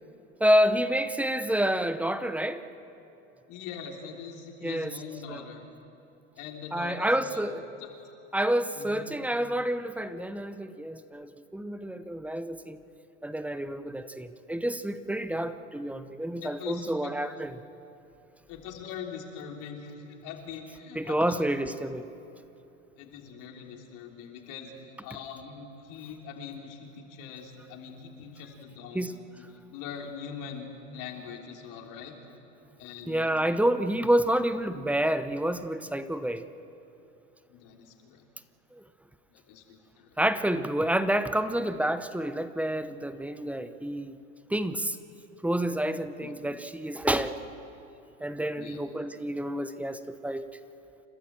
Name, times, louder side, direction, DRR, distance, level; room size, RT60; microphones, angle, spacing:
voice 1, 0.4-2.6 4.6-4.9 5.3-5.4 6.7-7.6 8.3-12.8 13.2-17.6 20.9-22.1 28.9-29.2 33.1-36.4 38.7-38.8 40.2-44.2 44.5-45.0 45.4-47.3 48.2-50.4, right 1 dB, 5° right, 12 dB, 0.8 m, -28 dB
voice 2, 3.5-5.7 6.4-7.5 7.8-7.9 8.8-9.1 16.4-17.1 18.5-21.4 23.0-29.1 29.4-29.5 29.7-32.1 32.8-33.3 37.5-38.2 39.3-40.1 46.2-46.3 48.6-48.8, left 6 dB, 50° left, 1 dB, 3.5 m, -42 dB
29.5 x 13.0 x 7.6 m, 2.9 s
hypercardioid pair, 100°, 38 cm